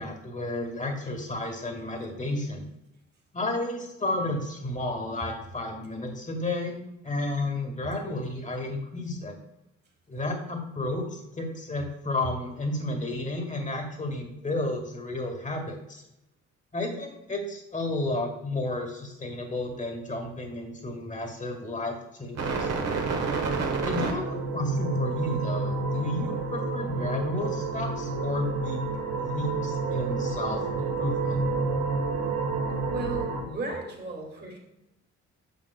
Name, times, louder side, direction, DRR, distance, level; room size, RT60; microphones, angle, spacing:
voice 1, 0.0-2.6 3.3-9.4 10.1-16.0 16.7-22.7 23.8-28.8 29.2-31.4, left 2 dB, 25° left, 4 dB, 1.7 m, -32 dB
sound 1, 22.4-33.4, right 4 dB, 60° right, 1.4 m, -29 dB
voice 2, 32.9-34.6, right 2 dB, 35° right, 1 dB, 2.0 m, -34 dB
9.7 x 6.1 x 2.2 m, 0.91 s
cardioid pair, 90°, 30 cm